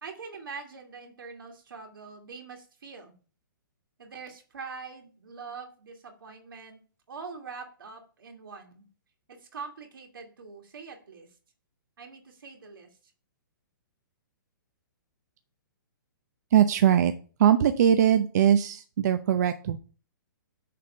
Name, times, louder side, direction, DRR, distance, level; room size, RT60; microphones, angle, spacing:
voice 1, 0.0-3.2 4.0-6.8 7.1-8.9 9.3-11.3 12.0-12.9, right 5 dB, 85° right, 3 dB, 2.5 m, -43 dB
voice 2, 16.5-17.1 17.4-19.8, right 9 dB, 50° right, 9 dB, 0.7 m, -21 dB
6.7 x 5.2 x 5.5 m, 0.39 s
hypercardioid pair, 160°, 11 cm